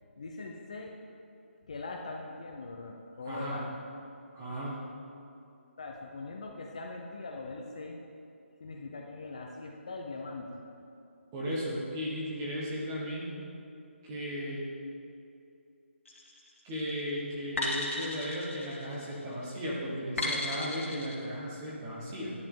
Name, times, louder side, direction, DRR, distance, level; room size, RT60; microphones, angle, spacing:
voice 1, 0.2-1.0 1.7-3.7 5.8-8.0 8.6-10.6, left 3 dB, 30° left, 1 dB, 0.6 m, -41 dB
voice 2, 3.3-3.6 4.3-4.8 11.3-13.3 14.0-14.6 16.6-22.3, equal, 10° right, -5 dB, 1.1 m, -35 dB
sound 1, 16.1-16.5 17.6-19.2 20.2-21.2, left 2 dB, 80° left, 2.3 m, -35 dB
10.5 x 9.1 x 3.7 m, 2.6 s
hypercardioid pair, 175°, 7 cm